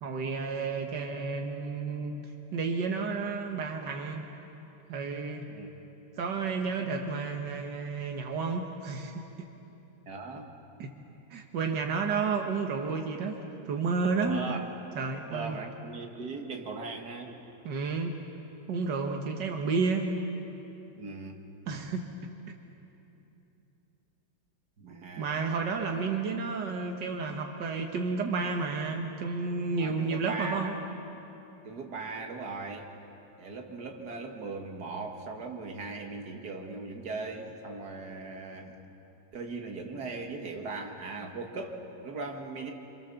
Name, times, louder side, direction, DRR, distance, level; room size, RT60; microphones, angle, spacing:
voice 1, 0.0-4.3 4.9-5.5 6.2-9.2 10.8-10.9 11.3-13.4 13.7-14.4 15.0-15.6 17.6-18.1 18.7-20.1 21.7-22.1 25.2-30.8, right 4 dB, 90° right, 2 dB, 1.9 m, -31 dB
voice 2, 10.1-10.5 12.2-12.3 13.2-13.3 14.2-14.6 15.3-17.4 21.0-21.4 24.8-25.4 29.8-30.8 31.6-32.9 33.4-38.8 39.3-42.7, right 3 dB, 65° right, 2 dB, 2.4 m, -39 dB
27.0 x 26.0 x 7.0 m, 3.0 s
omnidirectional pair, 1.8 m